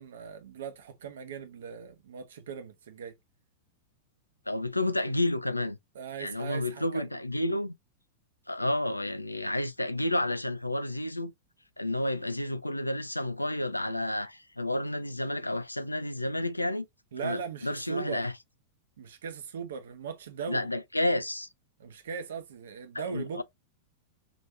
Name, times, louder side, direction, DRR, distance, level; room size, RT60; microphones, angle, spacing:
voice 1, 0.0-3.1 5.9-7.1 17.1-18.3 19.0-20.7 21.8-23.4, right 7 dB, 65° right, 1.0 m, -39 dB
voice 2, 4.5-5.8 6.2-7.7 8.5-11.3 11.8-16.9 17.2-18.3 20.5-21.5 22.9-23.4, left 1 dB, 90° left, 0.5 m, -30 dB
5.2 x 3.1 x 2.7 m
figure-of-eight pair, 95°, 0 cm